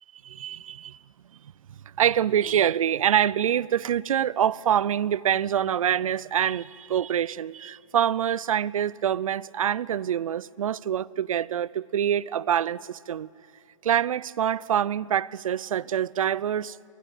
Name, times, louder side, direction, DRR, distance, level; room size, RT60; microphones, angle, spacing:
voice 1, 0.2-1.0 2.0-13.3 13.8-16.8, right 9 dB, 85° right, 0.6 m, -25 dB
26.0 x 20.5 x 9.4 m
hypercardioid pair, 165°, 17 cm